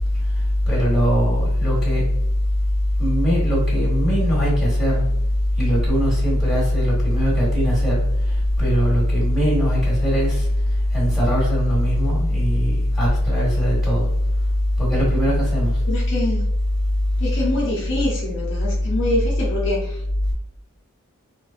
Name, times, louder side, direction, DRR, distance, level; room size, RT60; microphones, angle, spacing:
voice 1, 0.7-2.0 3.0-5.0 5.6-8.0 8.6-10.4 10.9-14.1 14.8-15.7, equal, ahead, -7 dB, 1.4 m, -19 dB
voice 2, 15.9-16.4 17.2-19.9, left 1 dB, 55° left, -4 dB, 0.7 m, -25 dB
3.2 x 2.1 x 2.4 m, 0.78 s
head